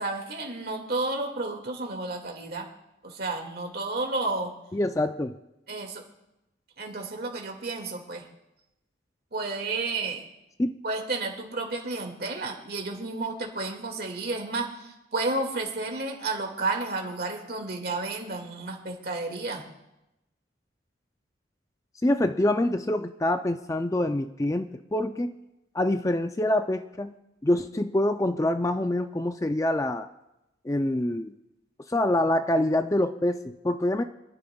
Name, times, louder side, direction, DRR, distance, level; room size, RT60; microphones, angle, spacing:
voice 1, 0.0-2.7 3.0-4.5 5.7-6.0 6.8-8.3 9.3-10.2 10.8-19.6, right 3 dB, 55° right, 2 dB, 2.1 m, -31 dB
voice 2, 4.7-5.3 10.6-10.7 22.0-25.4 25.7-27.1 27.4-30.1 30.6-31.3 31.9-34.0, left 1 dB, 15° left, 8 dB, 0.4 m, -25 dB
27.5 x 11.0 x 2.3 m, 0.92 s
head